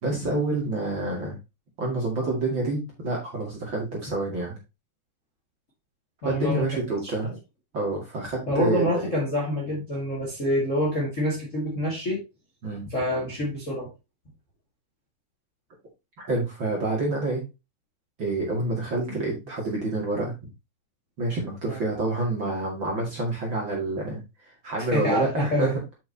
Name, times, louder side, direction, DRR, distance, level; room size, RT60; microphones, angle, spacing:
voice 1, 0.0-1.3 1.8-4.6 6.2-7.3 7.7-9.0 12.6-12.8 16.2-17.4 18.2-20.3 21.2-24.2 24.4-25.8, right 2 dB, 35° right, 2.6 m, -28 dB
voice 2, 6.2-6.6 7.0-7.3 8.5-12.2 12.9-13.9 19.1-19.2 21.7-21.8 24.9-25.7, equal, 25° left, 2.0 m, -26 dB
7.9 x 5.9 x 2.9 m
omnidirectional pair, 4.3 m